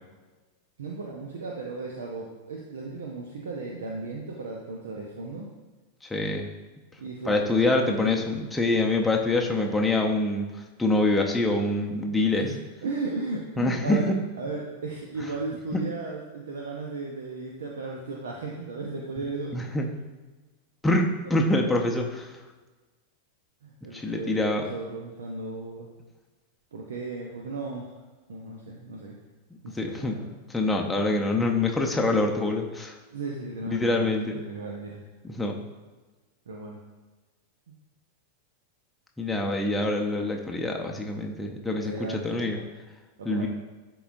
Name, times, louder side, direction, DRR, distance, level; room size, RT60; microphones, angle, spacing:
voice 1, 0.8-5.5 7.0-8.1 9.2-9.8 12.3-14.1 14.4-19.6 23.6-25.9 26.7-28.0 28.3-29.2 29.6-30.3 33.1-35.0 36.5-36.8 37.7-37.8 41.7-42.6 43.2-43.5, right 3 dB, 65° right, -1 dB, 0.7 m, -35 dB
voice 2, 6.0-6.5 7.2-12.4 13.6-14.2 19.5-19.9 20.8-22.4 23.9-24.7 29.7-30.2 30.5-33.0 33.7-34.4 35.2-35.6 39.2-42.6 43.2-43.5, left 2 dB, 5° left, 1 dB, 0.7 m, -25 dB
11.0 x 3.9 x 2.6 m, 1.2 s
figure-of-eight pair, 90°, 0 cm